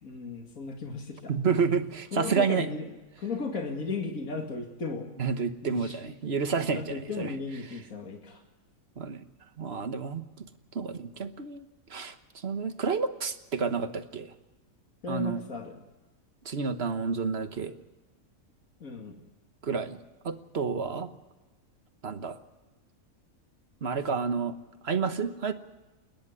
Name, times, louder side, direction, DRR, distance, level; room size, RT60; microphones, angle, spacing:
voice 1, 0.0-1.4 2.1-2.9 3.2-5.1 5.6-6.0 6.7-8.4 15.0-15.8 18.8-19.2, left 4 dB, 70° left, 2 dB, 2.7 m, -35 dB
voice 2, 1.3-2.7 5.2-7.3 9.0-9.2 9.6-10.2 10.7-11.6 11.9-12.1 12.4-14.3 15.1-15.4 16.4-17.7 19.6-20.0 20.2-21.1 22.0-22.4 23.8-24.6 24.8-25.5, right 5 dB, 45° right, 9 dB, 1.4 m, -30 dB
29.0 x 10.5 x 9.8 m, 1.1 s
omnidirectional pair, 1.5 m